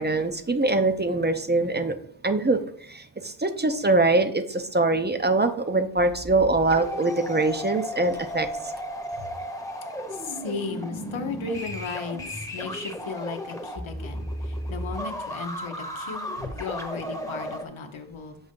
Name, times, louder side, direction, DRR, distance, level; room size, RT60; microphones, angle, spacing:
voice 1, 0.0-2.0 2.2-8.7, right 2 dB, 25° right, 7 dB, 0.6 m, -23 dB
sound 1, 6.0-17.6, equal, 5° left, 0.9 m, -34 dB
voice 2, 10.1-18.4, left 4 dB, 90° left, 6 dB, 0.8 m, -35 dB
7.0 x 2.7 x 5.1 m, 0.63 s
cardioid pair, 45°, 46 cm